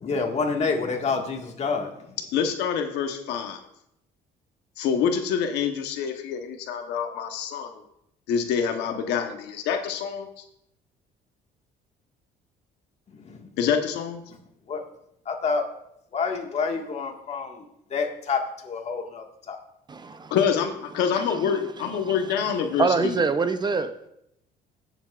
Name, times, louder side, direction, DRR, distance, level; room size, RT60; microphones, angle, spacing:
voice 1, 0.0-1.9 14.7-14.8 15.3-15.6 16.1-17.6 17.9-18.4 18.7-19.6, left 4 dB, 40° left, 1.7 m, -27 dB
voice 2, 2.3-3.6 4.8-7.8 8.3-10.3 13.6-14.2 20.3-23.2, left 7 dB, 85° left, 1.1 m, -26 dB
voice 3, 19.9-20.3 21.2-21.3 22.0-22.1 22.8-24.1, right 4 dB, 25° right, 0.6 m, -25 dB
17.0 x 7.2 x 2.4 m
cardioid pair, 110°, 17 cm